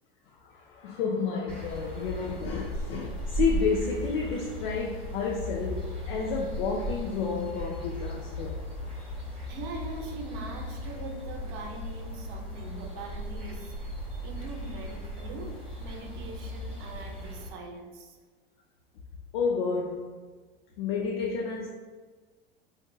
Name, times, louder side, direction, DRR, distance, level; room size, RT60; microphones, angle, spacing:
voice 1, 0.4-8.6 19.3-20.1 20.8-21.7, left 5 dB, 65° left, 0.5 m, -30 dB
sound 1, 1.5-17.5, equal, 5° left, 1.1 m, -37 dB
voice 2, 9.5-13.8 14.2-18.2, right 2 dB, 55° right, 0.6 m, -42 dB
3.9 x 2.5 x 2.3 m
hypercardioid pair, 90°, 30 cm